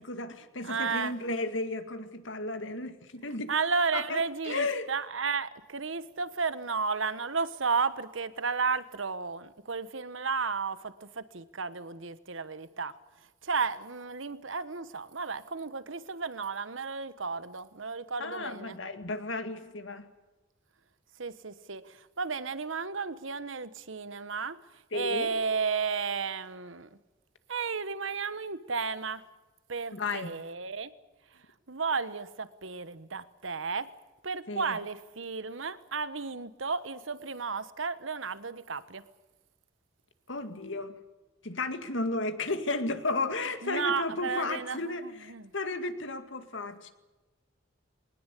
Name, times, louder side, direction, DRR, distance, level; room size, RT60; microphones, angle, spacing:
voice 1, 0.0-3.5 3.9-4.9 18.2-20.1 24.9-25.3 29.9-30.4 34.5-34.7 40.3-41.0 41.4-46.9, left 2 dB, 70° left, 9 dB, 2.2 m, -34 dB
voice 2, 0.6-1.1 3.5-12.9 13.4-18.8 21.2-24.6 24.9-26.9 27.5-29.2 29.7-30.9 31.3-31.4 31.7-33.9 34.2-39.0 43.6-45.5, right 5 dB, 80° right, 14 dB, 1.2 m, -33 dB
22.5 x 19.0 x 8.4 m, 1.1 s
head